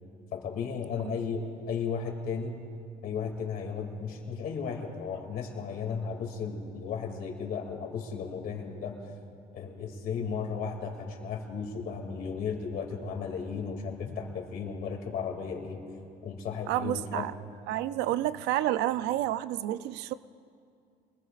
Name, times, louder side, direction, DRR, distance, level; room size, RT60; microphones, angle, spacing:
voice 1, 0.3-2.6 3.0-8.9 9.5-15.8 16.2-17.3, left 6 dB, 60° left, 2 dB, 2.6 m, -35 dB
voice 2, 16.7-17.3 17.7-20.1, right 13 dB, 90° right, 15 dB, 0.5 m, -29 dB
25.5 x 20.0 x 2.5 m, 2.3 s
cardioid pair, 110°, 17 cm